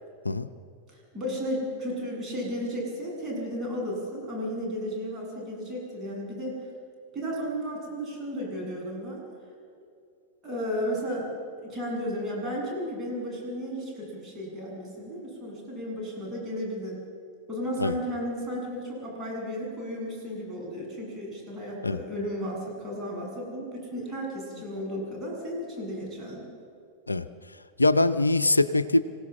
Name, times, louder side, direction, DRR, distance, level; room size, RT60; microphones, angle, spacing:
voice 1, 0.9-6.6 7.1-9.2 10.4-11.3 11.6-17.0 17.5-26.5, equal, 20° right, -2 dB, 7.9 m, -34 dB
voice 2, 27.8-29.0, left 2 dB, 80° left, 12 dB, 0.6 m, -22 dB
26.0 x 17.0 x 7.4 m, 2.4 s
figure-of-eight pair, 90°, 0 cm